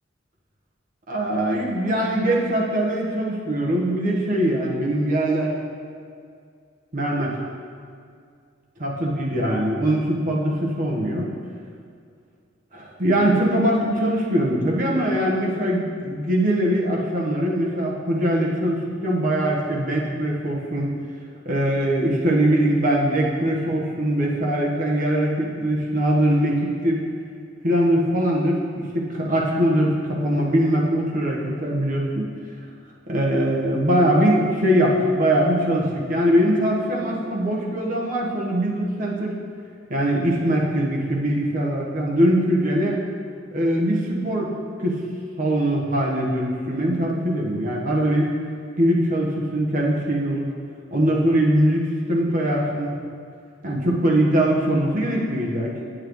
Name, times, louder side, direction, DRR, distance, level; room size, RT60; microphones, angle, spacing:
voice 1, 1.1-5.5 6.9-7.3 8.8-11.3 12.7-20.9 21.4-27.0 27.6-32.3 33.1-39.3 39.9-43.0 43.5-44.5 44.8-45.0 45.4-48.3 48.8-50.5 50.9-53.0 53.6-55.8, right 1 dB, 45° right, -3 dB, 1.2 m, -22 dB
8.7 x 7.6 x 3.1 m, 2.3 s
head